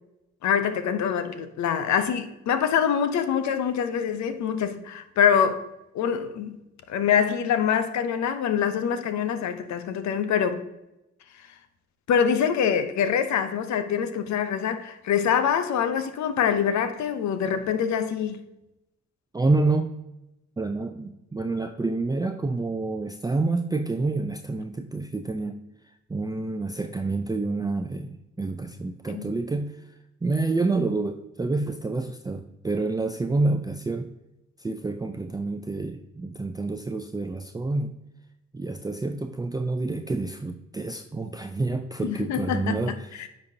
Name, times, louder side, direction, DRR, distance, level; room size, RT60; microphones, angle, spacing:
voice 1, 0.4-5.6 5.9-6.6 6.9-10.6 12.1-18.4 29.1-29.4 42.0-43.3, left 8 dB, 70° left, 0.7 m, -25 dB
voice 2, 19.3-19.9 20.6-25.6 26.1-29.8 30.2-34.1 34.6-37.9 38.5-42.9, right 3 dB, 15° right, 0.5 m, -28 dB
9.4 x 4.2 x 2.7 m
supercardioid pair, 50°, 29 cm